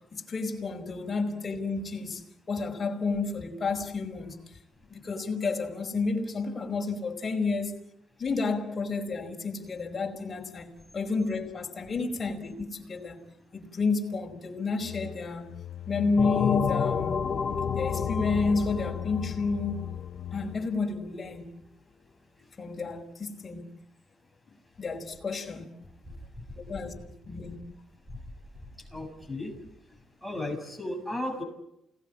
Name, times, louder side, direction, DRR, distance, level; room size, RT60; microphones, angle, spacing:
voice 1, 0.1-4.4 4.9-7.7 8.2-13.2 13.5-15.5 15.9-17.2 17.7-19.9 20.3-21.5 22.6-23.7 24.8-25.7 26.5-26.9 27.2-27.6, left 4 dB, 35° left, 5.1 m, -30 dB
sound 1, 14.8-20.8, left 11 dB, 75° left, 0.9 m, -38 dB
sound 2, 16.2-20.6, left 6 dB, 50° left, 2.0 m, -30 dB
voice 2, 28.9-29.5 30.2-31.4, left 1 dB, ahead, 7.3 m, -34 dB
29.0 x 18.5 x 8.8 m
cardioid pair, 90°, 0 cm